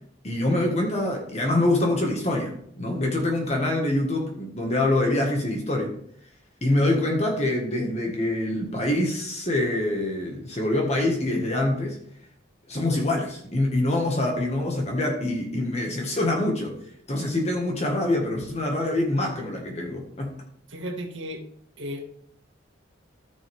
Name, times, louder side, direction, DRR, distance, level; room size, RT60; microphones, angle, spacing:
voice 1, 0.2-5.9 6.6-12.0 12.7-16.8 17.1-20.3, left 1 dB, 35° left, 1 dB, 1.6 m, -25 dB
voice 2, 20.7-21.4 21.8-22.0, equal, 80° right, 2 dB, 1.8 m, -34 dB
14.0 x 6.2 x 3.5 m, 0.65 s
head